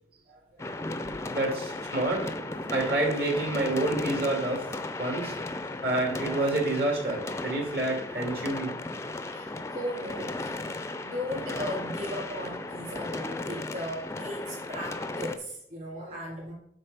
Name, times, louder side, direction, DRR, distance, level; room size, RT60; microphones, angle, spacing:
sound 1, 0.6-15.4, left 2 dB, 15° left, 0.4 m, -35 dB
voice 1, 1.3-4.7 5.0-5.3 5.8-8.7 16.0-16.1, right 2 dB, 60° right, 1 dB, 2.1 m, -28 dB
voice 2, 9.3-10.7 11.0-16.5, equal, 40° right, -7 dB, 2.4 m, -37 dB
7.7 x 4.1 x 5.4 m, 0.71 s
head